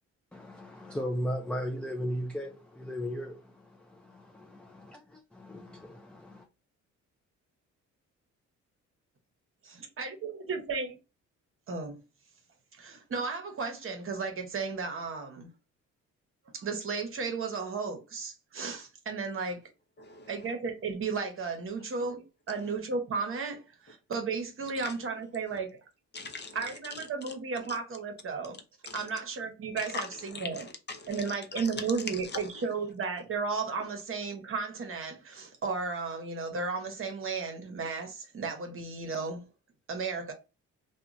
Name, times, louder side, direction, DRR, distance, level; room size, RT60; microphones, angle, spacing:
voice 1, 0.3-6.5, equal, 5° left, 0.3 m, -37 dB
voice 2, 9.8-11.0 11.7-12.0 12.8-15.5 16.5-19.6 20.3-25.8 26.5-28.6 28.9-30.7 31.1-39.5 39.9-40.3, right 4 dB, 45° right, 0.9 m, -34 dB
voice 3, 20.0-20.3 24.8-24.9 26.1-26.6 27.3-27.4 28.9-29.1 29.8-30.1 30.3-31.7 32.3-32.4, left 4 dB, 35° left, 0.7 m, -40 dB
2.8 x 2.2 x 2.5 m
cardioid pair, 90°, 30 cm